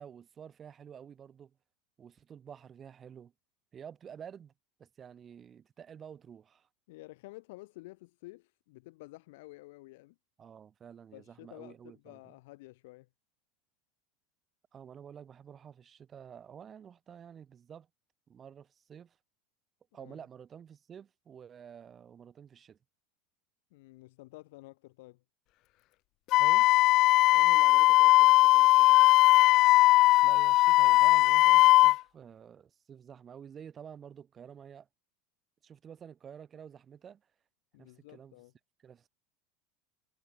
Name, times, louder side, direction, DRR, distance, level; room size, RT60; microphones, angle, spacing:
voice 1, 0.0-1.6 2.0-3.3 3.7-4.5 4.8-6.7 10.4-12.4 14.7-17.9 18.3-19.2 19.9-22.8 26.4-26.7 30.2-34.9 35.6-37.2 37.8-38.4 38.8-39.1, right 8 dB, 25° right, 4.1 m, -50 dB
voice 2, 6.9-10.2 11.1-13.1 20.0-20.2 23.7-25.2 27.3-29.1 37.7-38.5, left 21 dB, 70° left, 5.4 m, -51 dB
Wind instrument woodwind instrument, 26.3-32.0, left 18 dB, 45° left, 0.3 m, -20 dB
supercardioid pair, 150°, 0 cm